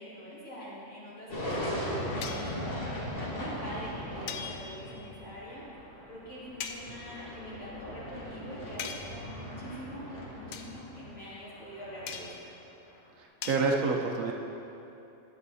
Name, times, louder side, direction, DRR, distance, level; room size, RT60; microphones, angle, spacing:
voice 1, 0.0-2.8 3.3-5.7 6.1-10.1 10.3-12.3, equal, 55° left, -8 dB, 2.8 m, -44 dB
sound 1, 1.3-12.5, equal, 40° left, 1.8 m, -39 dB
sound 2, 2.2-2.6 4.3-5.0 6.6-6.9 8.8-9.3 10.5-10.8 12.1-12.5 13.4-13.7, left 7 dB, 75° left, 1.1 m, -40 dB
voice 2, 13.2-14.3, right 4 dB, 70° right, 1 dB, 1.1 m, -28 dB
11.0 x 7.9 x 4.1 m, 2.9 s
omnidirectional pair, 1.5 m